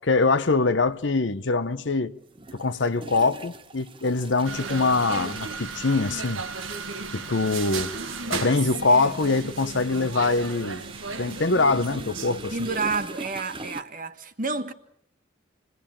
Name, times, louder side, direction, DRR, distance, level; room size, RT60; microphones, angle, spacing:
voice 1, 0.0-2.1 2.5-6.4 7.1-7.9 8.3-10.8 11.2-12.5, left 3 dB, 65° left, 0.9 m, -23 dB
sound 1, 0.8-0.9 2.3-13.8, right 3 dB, 25° right, 1.0 m, -44 dB
sound 2, 4.4-13.1, right 4 dB, 80° right, 1.7 m, -35 dB
voice 2, 7.9-9.1 12.5-14.7, right 4 dB, 40° right, 1.6 m, -31 dB
27.5 x 20.5 x 8.8 m
head